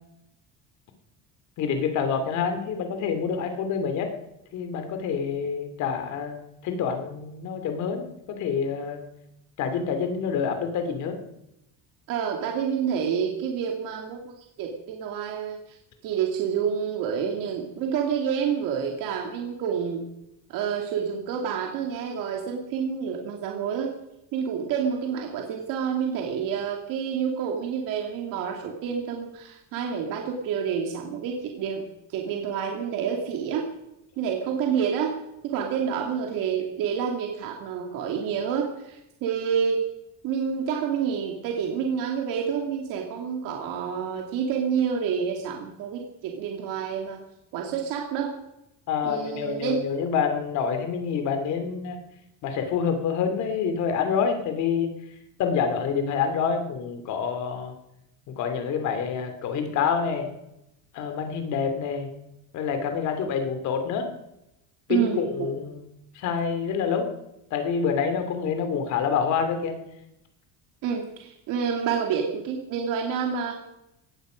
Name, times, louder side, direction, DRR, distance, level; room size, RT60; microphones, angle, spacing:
voice 1, 1.6-4.1 4.5-9.0 9.6-11.2 48.9-52.0 52.4-54.9 55.4-57.7 58.3-60.3 60.9-62.1 62.5-64.1 64.9-67.1 67.5-69.8, left 6 dB, 55° left, 7 dB, 2.9 m, -27 dB
voice 2, 12.1-15.8 16.0-20.1 20.5-23.9 24.3-31.8 32.1-33.7 34.2-35.2 35.4-39.8 40.2-47.2 47.5-48.3 49.0-49.8 64.9-65.5 70.8-73.6, right 7 dB, 65° right, 1 dB, 2.6 m, -28 dB
18.0 x 15.0 x 5.2 m, 0.87 s
cardioid pair, 180°, 35 cm